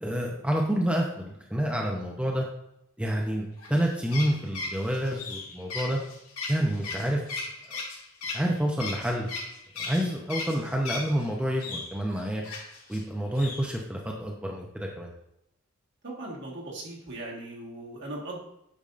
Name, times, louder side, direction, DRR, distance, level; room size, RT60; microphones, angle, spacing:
voice 1, 0.0-2.5 3.0-6.0 6.5-7.2 8.3-9.3 9.8-12.4 12.9-15.1, equal, 5° right, -1 dB, 0.6 m, -28 dB
sound 1, 3.6-11.2 11.6-13.0 13.3-13.6, left 3 dB, 85° left, 1.9 m, -36 dB
voice 2, 16.0-18.4, right 2 dB, 55° right, -2 dB, 1.6 m, -38 dB
8.4 x 5.3 x 2.5 m, 0.80 s
head